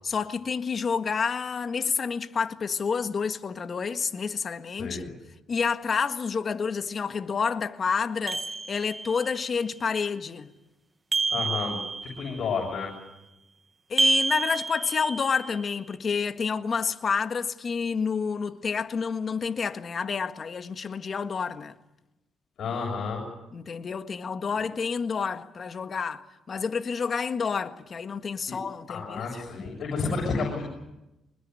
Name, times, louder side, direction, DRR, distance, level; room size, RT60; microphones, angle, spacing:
voice 1, 0.0-5.1 5.5-10.5 13.9-21.8 23.5-29.4, left 5 dB, 45° left, 1.7 m, -29 dB
voice 2, 4.8-5.1 11.3-11.8 12.0-12.9 22.6-23.2 28.5-28.6 28.9-30.6, left 4 dB, 60° left, 7.6 m, -30 dB
sound 1, 8.3-9.3 11.1-12.4 14.0-15.5, right 3 dB, 25° right, 1.3 m, -28 dB
25.0 x 21.0 x 9.7 m
cardioid pair, 90°, 0 cm